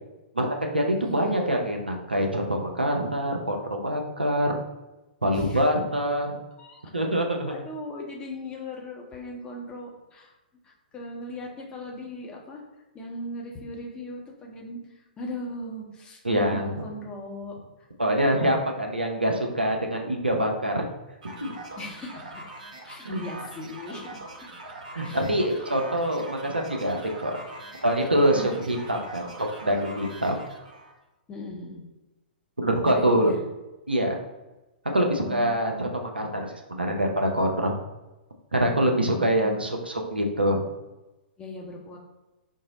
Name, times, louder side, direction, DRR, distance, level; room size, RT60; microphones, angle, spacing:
voice 1, 0.3-4.6 5.2-6.4 6.9-7.5 16.2-16.7 18.0-20.9 21.4-21.5 23.0-23.2 24.9-27.4 27.8-29.3 29.6-30.3 32.6-33.3 33.9-34.2 34.9-37.8 38.5-40.6, equal, 85° right, 2 dB, 0.6 m, -25 dB
voice 2, 1.0-1.4 5.3-5.6 6.6-6.8 7.5-10.3 10.6-12.6 12.9-14.8 15.2-17.6 21.8-22.4 22.9-24.2 25.0-25.2 28.3-28.5 31.3-31.8 32.8-33.4 35.0-35.9 38.8-39.6 41.4-42.0, left 1 dB, 15° left, -1 dB, 0.7 m, -38 dB
sound 1, 21.2-31.0, right 2 dB, 55° right, 0.8 m, -42 dB
3.6 x 2.0 x 3.8 m, 1.0 s
figure-of-eight pair, 115°, 5 cm